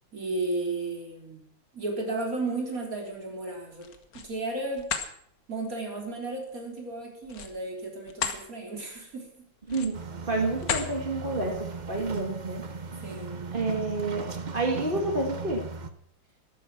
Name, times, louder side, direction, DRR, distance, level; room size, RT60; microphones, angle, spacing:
voice 1, 0.1-1.4 1.7-3.9 4.2-4.9 5.5-9.4 13.0-13.5, right 2 dB, 40° right, 0 dB, 3.9 m, -34 dB
sound 1, 3.7-4.3 4.7-5.1 7.2-8.4 8.9-9.1 9.6-10.1 10.6-10.9, left 6 dB, 50° left, 1.6 m, -33 dB
voice 2, 9.7-12.6 13.5-15.6, right 2 dB, 25° right, 1 dB, 2.0 m, -29 dB
sound 2, 9.9-15.9, right 4 dB, 70° right, 0.4 m, -38 dB
13.0 x 12.5 x 6.0 m, 0.64 s
omnidirectional pair, 2.2 m